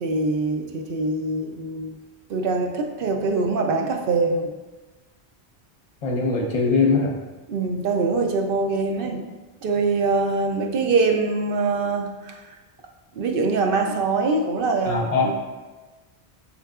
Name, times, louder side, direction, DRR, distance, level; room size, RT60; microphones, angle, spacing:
voice 1, 0.0-2.0 2.3-4.5 7.5-9.2 9.6-12.5 13.2-15.3, right 3 dB, 65° right, 2 dB, 0.7 m, -23 dB
voice 2, 6.0-7.2 14.8-15.3, left 4 dB, 40° left, 0 dB, 0.7 m, -21 dB
5.8 x 3.8 x 2.3 m, 1.2 s
omnidirectional pair, 1.1 m